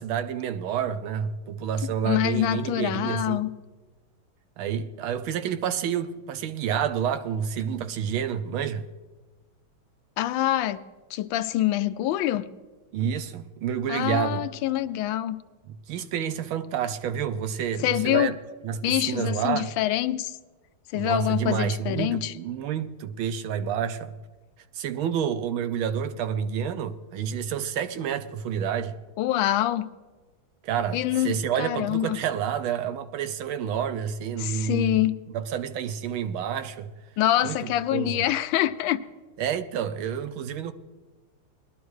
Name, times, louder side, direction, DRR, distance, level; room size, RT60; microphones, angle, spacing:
voice 1, 0.0-3.4 4.6-8.8 12.9-14.4 15.7-18.4 18.6-19.7 20.9-24.2 24.7-29.0 30.6-36.9 37.4-38.2 39.4-40.7, right 8 dB, 85° right, 1.5 m, -29 dB
voice 2, 1.8-3.5 10.2-10.8 11.1-12.5 13.9-15.4 17.8-18.3 18.8-20.4 20.9-22.3 29.2-29.9 30.9-32.2 34.4-35.2 37.2-39.0, left 13 dB, 80° left, 1.3 m, -25 dB
20.5 x 12.0 x 3.1 m
omnidirectional pair, 2.2 m